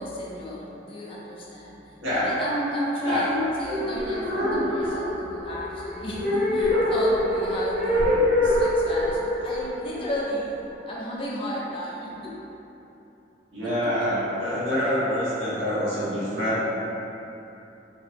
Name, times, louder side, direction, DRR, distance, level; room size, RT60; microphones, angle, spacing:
voice 1, 0.0-1.8 2.1-12.5 13.6-14.1, equal, 30° left, -5 dB, 0.4 m, -33 dB
voice 2, 2.0-2.4 3.0-3.2 4.3-4.6 13.5-16.6, equal, 75° right, -11 dB, 1.1 m, -26 dB
sound 1, 3.6-10.8, left 1 dB, 55° right, 0.7 m, -25 dB
2.9 x 2.7 x 2.5 m, 3.0 s
head